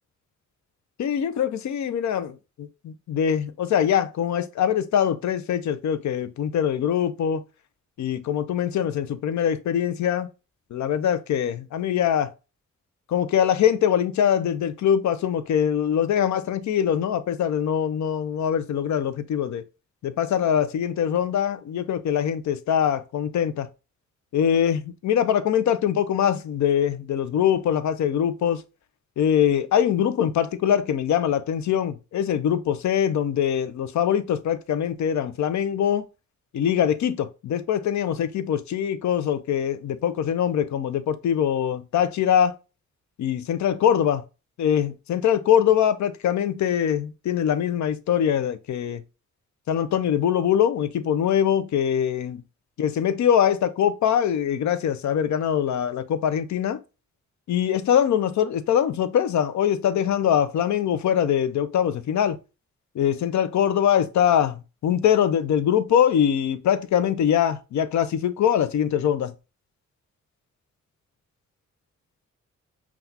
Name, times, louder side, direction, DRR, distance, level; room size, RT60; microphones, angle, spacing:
voice 1, 1.0-7.4 8.0-10.3 10.7-12.3 13.1-19.6 20.0-23.7 24.3-28.6 29.2-36.0 36.5-42.5 43.2-44.2 44.6-49.0 49.7-52.4 52.8-56.8 57.5-62.4 62.9-69.3, left 9 dB, 75° left, 0.5 m, -23 dB
5.8 x 2.4 x 2.7 m
wide cardioid pair, 110°, 29 cm